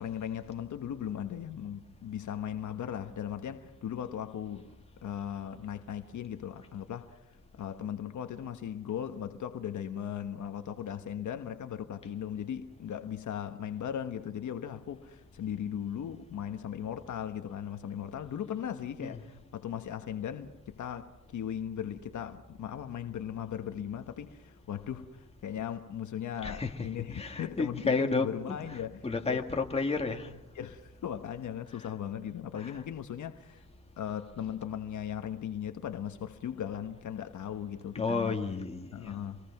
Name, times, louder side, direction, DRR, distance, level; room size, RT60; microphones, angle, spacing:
voice 1, 0.0-4.7 5.0-29.6 30.5-33.6 34.0-38.4 38.9-39.4, left 9 dB, 65° left, 1.2 m, -38 dB
voice 2, 26.4-30.3 32.6-32.8 37.9-39.1, left 4 dB, 20° left, 2.0 m, -32 dB
26.5 x 22.0 x 5.9 m
cardioid pair, 120°, 32 cm